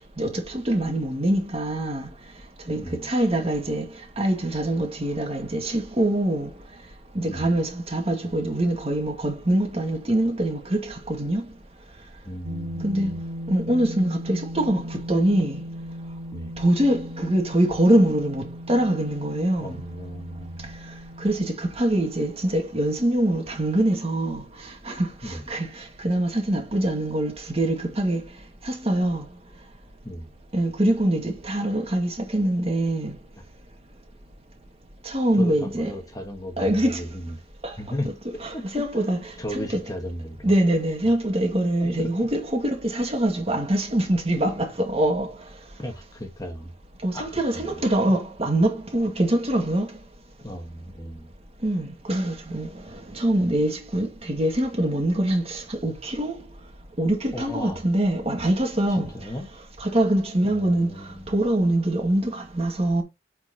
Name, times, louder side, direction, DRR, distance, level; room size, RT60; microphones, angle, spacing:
voice 1, 0.2-2.1 2.7-3.9 4.2-6.5 7.1-11.4 12.8-13.2 13.5-15.6 16.6-19.8 21.2-28.3 28.6-29.3 30.5-33.2 35.0-35.9 36.6-37.1 37.6-37.8 38.4-39.8 40.4-45.3 47.0-50.0 51.6-56.4 57.0-59.3 59.8-60.9 61.3-63.0, right 1 dB, 35° right, 2.0 m, -24 dB
voice 2, 2.8-3.1 7.3-7.6 12.2-13.2 16.3-16.5 19.6-20.6 25.2-25.4 30.0-30.3 35.4-37.3 37.8-38.1 38.5-38.9 39.4-40.5 42.0-42.1 45.8-46.7 47.1-47.8 50.4-51.3 57.3-57.8 59.0-59.5 60.4-61.3, left 1 dB, 20° left, 1.5 m, -35 dB
sound 1, 12.4-21.5, equal, 80° right, 2.5 m, -37 dB
9.3 x 4.5 x 3.0 m
head